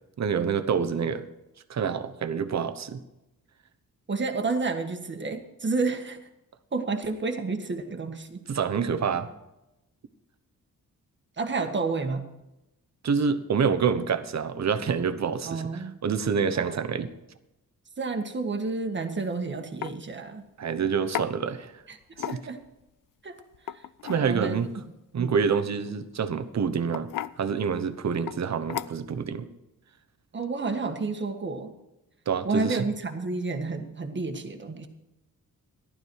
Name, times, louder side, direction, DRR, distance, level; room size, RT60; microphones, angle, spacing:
voice 1, 0.2-1.3 1.7-3.0 8.5-9.3 13.0-17.1 20.6-21.8 22.2-22.3 24.0-24.7 25.1-27.1 27.4-29.5 32.3-32.9, right 6 dB, 55° right, 10 dB, 1.1 m, -27 dB
voice 2, 4.1-6.2 6.7-8.5 11.4-12.3 15.5-16.0 16.6-16.8 18.0-20.4 21.9-22.0 22.2-22.6 23.2-23.4 23.7-23.8 24.1-24.6 25.2-25.3 30.3-31.7 32.5-34.9, right 3 dB, 35° right, 6 dB, 1.6 m, -30 dB
sound 1, 19.1-19.3 19.8-20.0 21.1-21.3 22.1-22.7 23.5-24.2 25.9-26.1 26.9-27.4 28.3-28.4 28.7-29.2, left 11 dB, 70° left, 0.5 m, -34 dB
15.0 x 11.5 x 4.7 m, 0.95 s
wide cardioid pair, 110°, 33 cm